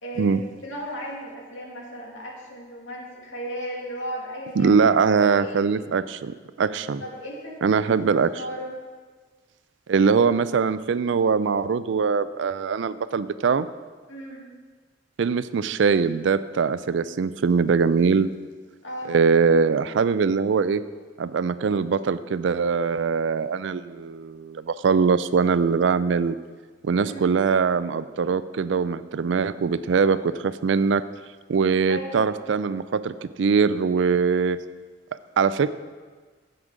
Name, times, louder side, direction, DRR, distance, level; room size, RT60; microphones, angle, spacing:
voice 1, 0.0-4.7 5.2-5.7 7.0-7.9 8.4-8.8 14.1-14.5 18.8-19.2 26.9-27.3 31.9-32.3, equal, 85° left, -3 dB, 2.5 m, -35 dB
voice 2, 4.6-7.0 7.6-8.3 9.9-13.7 15.2-18.3 19.1-20.8 21.2-26.3 26.8-31.0 31.5-34.6 35.4-35.7, right 5 dB, 70° right, 15 dB, 0.4 m, -22 dB
9.7 x 8.0 x 5.0 m, 1.4 s
head